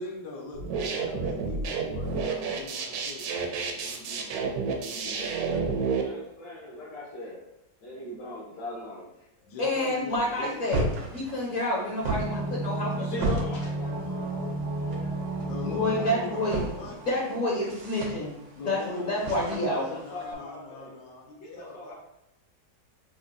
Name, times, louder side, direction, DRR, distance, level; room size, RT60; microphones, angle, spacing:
voice 1, 0.0-5.7 9.4-10.7 15.2-17.3 17.5-17.6 18.5-22.0, left 2 dB, 90° left, -2 dB, 1.5 m, -42 dB
sound 1, 0.5-6.0, right 5 dB, 70° right, 0.9 m, -30 dB
sound 2, 2.0-4.4 10.1-20.3, right 2 dB, 85° right, 1.4 m, -37 dB
voice 2, 6.0-7.4 7.8-9.1 12.9-15.1 15.8-16.0 18.6-19.2 19.7-21.0 21.4-22.0, left 2 dB, 75° left, -7 dB, 1.6 m, -41 dB
voice 3, 9.6-10.9 11.1-12.9 15.6-16.6 17.1-18.3 18.7-19.8, left 1 dB, 55° left, -4 dB, 1.0 m, -28 dB
sound 3, 12.0-17.7 17.9-18.0, right 2 dB, 25° right, 0.4 m, -33 dB
4.7 x 2.4 x 2.6 m, 0.85 s
omnidirectional pair, 1.9 m